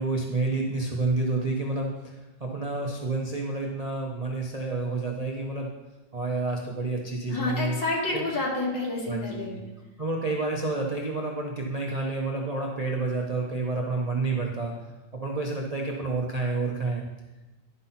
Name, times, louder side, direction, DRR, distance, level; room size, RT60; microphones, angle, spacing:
voice 1, 0.0-5.7 6.1-7.8 8.1-8.2 9.1-9.6 10.0-14.7 15.1-17.1, right 3 dB, 75° right, -1 dB, 0.3 m, -29 dB
voice 2, 7.3-9.6, left 2 dB, 70° left, -3 dB, 2.5 m, -29 dB
11.0 x 5.8 x 4.1 m, 1.1 s
omnidirectional pair, 2.1 m